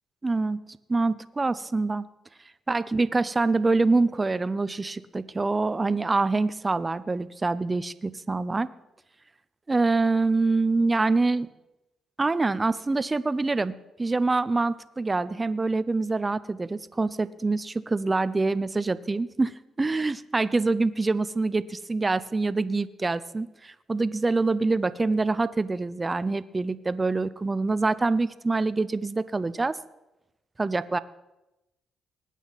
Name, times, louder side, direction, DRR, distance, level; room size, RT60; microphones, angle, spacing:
voice 1, 0.2-0.6 0.9-2.1 2.7-8.7 9.7-11.5 12.2-29.8 30.6-31.0, right 3 dB, 25° right, 16 dB, 0.6 m, -25 dB
20.0 x 9.1 x 4.1 m, 0.95 s
cardioid pair, 90°, 0 cm